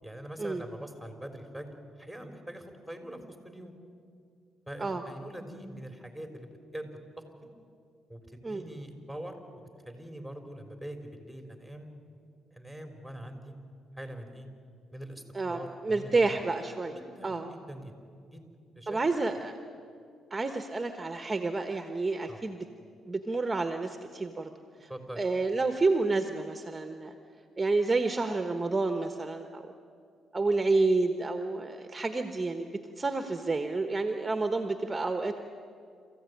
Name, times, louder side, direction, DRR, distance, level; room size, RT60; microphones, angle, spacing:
voice 1, 0.0-1.7 2.0-3.7 4.7-7.0 8.1-9.4 9.9-11.9 12.5-13.5 14.0-14.5 14.9-15.2 15.5-16.1 16.9-17.9 18.3-18.4 18.8-19.0 22.3-22.4 24.9-25.2, right 1 dB, 5° left, 5 dB, 3.8 m, -43 dB
voice 2, 15.3-16.9 17.2-17.5 18.9-19.6 20.3-22.6 23.0-24.5 24.8-24.9 25.2-27.1 27.6-29.6 30.3-35.4, right 3 dB, 20° right, 7 dB, 1.2 m, -29 dB
27.5 x 15.0 x 9.4 m, 2.4 s
cardioid pair, 90°, 0 cm